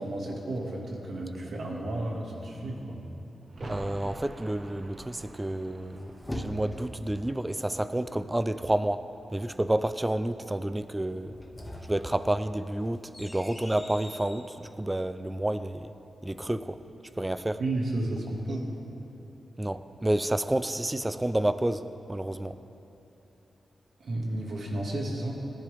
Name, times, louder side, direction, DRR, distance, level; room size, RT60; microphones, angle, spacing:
voice 1, 0.0-3.0 17.6-18.7 24.0-25.3, right 1 dB, 65° right, -1 dB, 2.0 m, -32 dB
sound 1, 3.5-9.1 9.3-9.4, right 1 dB, 45° right, 1.1 m, -46 dB
voice 2, 3.7-11.3 11.9-15.9 16.2-16.8 17.2-17.6 19.6-21.8 22.1-22.6, right 1 dB, 15° right, 12 dB, 0.4 m, -30 dB
sound 2, 5.6-7.1 11.2-14.5, left 1 dB, 15° left, 1.0 m, -42 dB
19.0 x 10.5 x 3.5 m, 2.9 s
wide cardioid pair, 105°, 0 cm